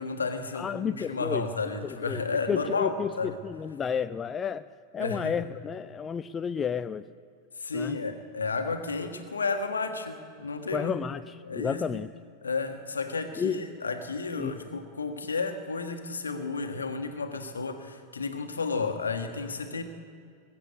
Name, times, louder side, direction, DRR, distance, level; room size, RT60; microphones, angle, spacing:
voice 1, 0.0-3.4 5.0-5.4 7.6-11.0 11.4-12.0 12.4-19.8, left 4 dB, 75° left, 6 dB, 1.5 m, -32 dB
voice 2, 0.5-1.5 1.8-4.6 4.9-7.1 7.7-8.0 10.7-12.1 13.4-13.5 14.4-14.6, left 7 dB, 20° left, 12 dB, 0.4 m, -31 dB
22.0 x 8.5 x 6.7 m, 2.4 s
figure-of-eight pair, 90°, 0 cm